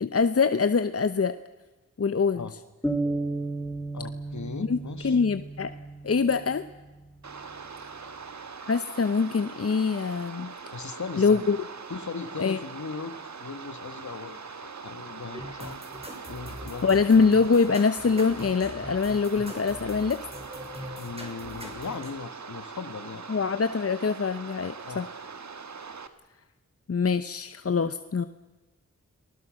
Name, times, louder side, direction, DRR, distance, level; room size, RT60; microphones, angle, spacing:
voice 1, 0.0-1.3 2.0-2.5 4.7-4.8 5.0-5.7 6.0-6.6 8.7-10.5 11.2-11.6 12.4-12.6 16.8-20.2 23.3-25.1 26.9-28.3, left 5 dB, 50° left, 11 dB, 0.9 m, -24 dB
sound 1, 2.8-6.6, right 2 dB, 5° left, 3.4 m, -33 dB
voice 2, 3.9-5.2 10.7-11.4 11.9-15.8 16.3-17.0 21.0-23.2 24.8-25.0, left 5 dB, 70° left, 10 dB, 1.9 m, -38 dB
sound 2, 7.2-26.1, right 5 dB, 65° right, 1.7 m, -42 dB
sound 3, 15.3-22.1, equal, 20° right, 6.2 m, -42 dB
30.0 x 20.0 x 6.5 m, 1.2 s
cardioid pair, 50°, 30 cm